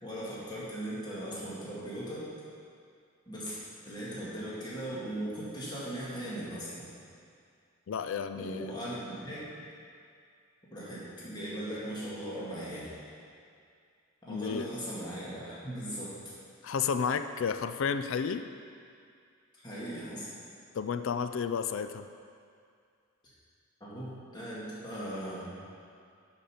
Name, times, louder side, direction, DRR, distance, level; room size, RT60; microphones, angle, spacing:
voice 1, 0.0-2.3 3.3-6.9 8.3-9.5 10.7-13.0 14.2-16.2 19.5-20.3 23.8-25.6, right 1 dB, 20° left, -9 dB, 2.0 m, -39 dB
voice 2, 7.9-8.7 14.3-14.7 16.6-18.5 20.7-22.1, left 6 dB, 65° left, 10 dB, 0.4 m, -32 dB
11.0 x 5.2 x 5.8 m, 2.3 s
head